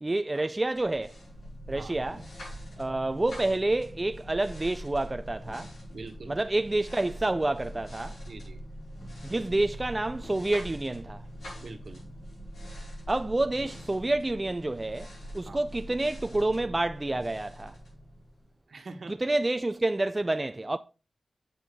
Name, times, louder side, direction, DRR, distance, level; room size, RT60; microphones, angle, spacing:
voice 1, 0.0-1.2 1.7-2.2 2.8-5.7 6.3-8.2 9.2-11.3 13.1-17.7 19.1-20.8, right 2 dB, 25° right, 0.3 m, -28 dB
sound 1, 0.7-18.5, equal, 75° left, 5.1 m, -43 dB
voice 2, 5.9-6.4 8.3-8.6 11.6-12.0 15.4-15.6 18.7-19.1, right 3 dB, 65° right, 1.3 m, -44 dB
7.5 x 6.7 x 3.5 m
wide cardioid pair, 115°, 0 cm